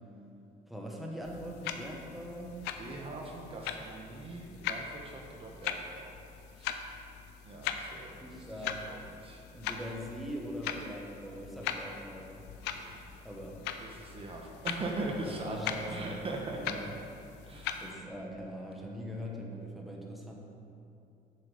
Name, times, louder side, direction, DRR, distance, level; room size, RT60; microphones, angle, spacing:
voice 1, 0.7-2.6 8.2-8.9 9.5-12.4 13.2-13.6 15.2-16.2 16.5-16.9 17.8-20.3, equal, ahead, -2 dB, 1.2 m, -42 dB
sound 1, 1.2-17.9, left 8 dB, 90° left, 0.5 m, -41 dB
voice 2, 2.8-6.1 6.6-6.8 7.4-8.2 8.6-9.4 12.6-13.1 13.8-15.6 15.9-16.8 17.4-17.8, right 2 dB, 35° right, 0 dB, 1.0 m, -41 dB
7.7 x 6.8 x 5.0 m, 2.7 s
cardioid pair, 110°, 17 cm